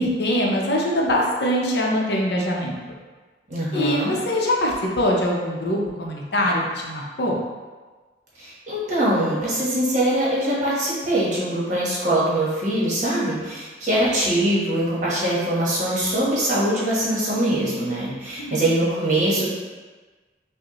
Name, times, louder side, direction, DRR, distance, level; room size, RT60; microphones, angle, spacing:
voice 1, 0.0-2.8 3.7-7.4 18.4-18.6, left 1 dB, 65° left, -2 dB, 0.6 m, -23 dB
voice 2, 3.5-4.1 8.4-19.5, right 1 dB, 40° right, -7 dB, 1.1 m, -22 dB
5.2 x 2.1 x 2.9 m, 1.3 s
head